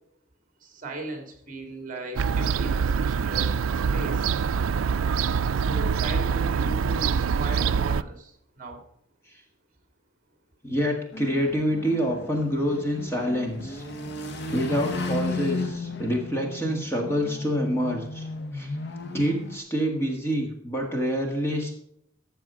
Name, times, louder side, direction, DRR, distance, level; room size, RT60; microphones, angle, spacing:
voice 1, 0.6-3.6 3.9-4.3 5.5-8.3 8.6-8.8, right 1 dB, 40° right, 4 dB, 2.3 m, -37 dB
Fowl / Gull seagull, 2.2-8.0, right 6 dB, 75° right, 0.4 m, -25 dB
voice 2, 10.6-13.8 14.5-18.3 18.5-18.7 19.1-21.8, equal, 10° left, 1 dB, 1.7 m, -27 dB
sound 1, 11.1-19.6, left 3 dB, 55° left, 1.2 m, -34 dB
13.5 x 7.1 x 5.0 m, 0.72 s
head